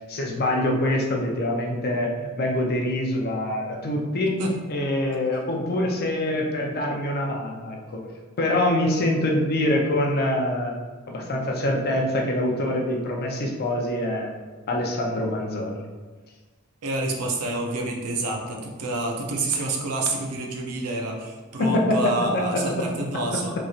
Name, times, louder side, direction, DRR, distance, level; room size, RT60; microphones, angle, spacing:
voice 1, 0.1-4.4 4.7-8.0 8.4-10.7 11.1-14.3 14.7-15.8 21.6-22.8, left 1 dB, 45° left, 0 dB, 0.5 m, -25 dB
voice 2, 16.8-23.5, right 2 dB, 80° right, 1 dB, 0.5 m, -28 dB
3.1 x 2.6 x 2.4 m, 1.4 s
head